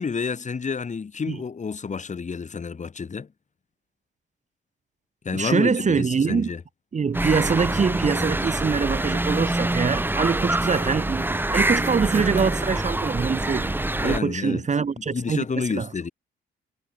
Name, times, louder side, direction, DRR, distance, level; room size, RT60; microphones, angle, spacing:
voice 1, 0.0-3.3 5.2-6.6 14.0-14.6 15.0-16.1, left 5 dB, 35° left, 4.6 m, -29 dB
voice 2, 5.3-6.5 6.9-15.4 15.7-15.9, right 5 dB, 35° right, 2.2 m, -24 dB
sound 1, 7.1-14.2, right 1 dB, 10° right, 2.4 m, -25 dB
cardioid pair, 90°, 20 cm